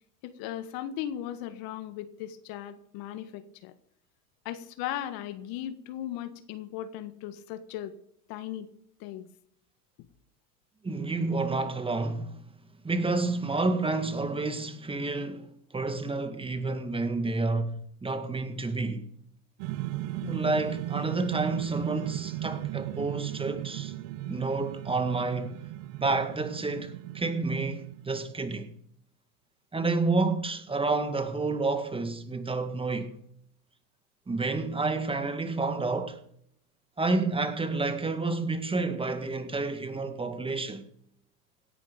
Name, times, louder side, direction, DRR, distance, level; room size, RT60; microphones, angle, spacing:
voice 1, 0.2-3.7 4.4-7.9 8.3-8.7 9.0-9.3, left 11 dB, 50° left, 1.7 m, -37 dB
voice 2, 10.8-12.4 12.8-19.1 20.2-23.9 24.3-25.6 26.0-28.7 29.7-33.2 34.3-36.2 37.0-40.9, right 3 dB, 10° right, 1.7 m, -29 dB
sound 1, 19.6-28.2, right 16 dB, 50° right, 1.0 m, -36 dB
17.5 x 11.0 x 5.3 m
hypercardioid pair, 100°, 47 cm